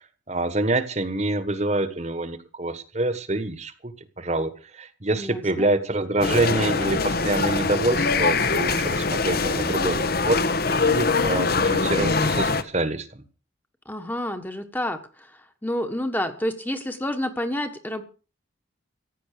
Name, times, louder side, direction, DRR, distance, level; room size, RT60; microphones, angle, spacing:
voice 1, 0.3-10.4 10.8-13.2, right 2 dB, 35° right, 11 dB, 1.5 m, -26 dB
voice 2, 5.2-5.7 13.8-18.0, left 1 dB, 10° left, 7 dB, 1.4 m, -29 dB
sound 1, 6.2-12.6, left 4 dB, 50° left, 1.2 m, -23 dB
15.5 x 10.5 x 6.8 m, 0.37 s
head